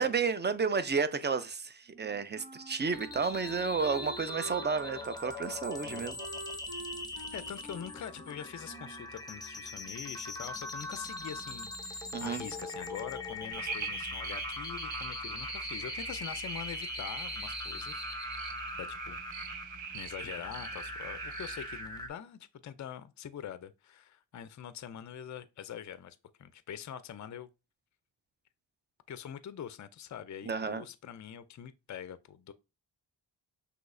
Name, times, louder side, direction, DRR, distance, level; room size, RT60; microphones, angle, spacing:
voice 1, 0.0-6.2 12.1-12.4 30.5-30.8, right 5 dB, 25° right, 0.4 m, -31 dB
Wind instrument woodwind instrument, 1.9-9.2, right 2 dB, 65° right, 1.2 m, -47 dB
sound 1, 2.9-22.1, left 2 dB, 10° left, 0.8 m, -41 dB
voice 2, 7.1-18.1 18.8-19.2 19.9-27.5 29.1-32.5, left 9 dB, 40° left, 0.4 m, -44 dB
sound 2, 13.5-21.8, right 6 dB, 80° right, 0.7 m, -42 dB
6.0 x 2.8 x 2.5 m
wide cardioid pair, 70°, 46 cm